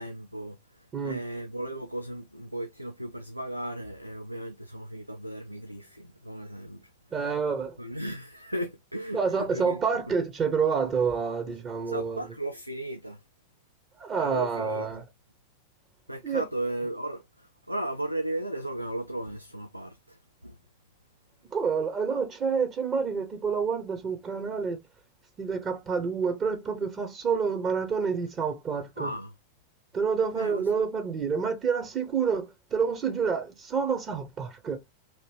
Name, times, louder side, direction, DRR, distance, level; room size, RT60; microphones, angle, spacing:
voice 1, 0.0-6.9 7.8-9.8 11.9-13.2 14.1-15.0 16.1-20.6 29.0-29.3 30.3-30.8, right 1 dB, 90° right, 0.3 m, -36 dB
voice 2, 7.1-7.8 9.1-12.2 14.0-15.0 16.2-16.4 21.5-24.8 25.4-29.1 29.9-34.8, right 5 dB, 25° right, 0.7 m, -28 dB
2.8 x 2.6 x 3.1 m
figure-of-eight pair, 90°, 0 cm